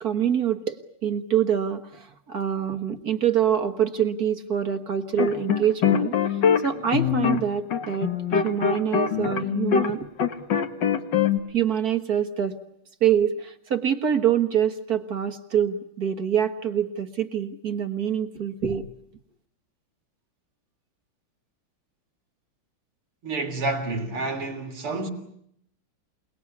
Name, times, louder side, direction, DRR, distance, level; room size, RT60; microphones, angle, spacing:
voice 1, 0.0-10.1 11.5-12.6 13.0-18.9, right 9 dB, 45° right, 1.8 m, -25 dB
sound 1, 5.2-9.9 10.2-11.4, left 8 dB, 60° left, 2.0 m, -23 dB
voice 2, 23.2-25.1, right 2 dB, 85° right, 4.1 m, -29 dB
28.0 x 19.5 x 9.6 m
omnidirectional pair, 2.4 m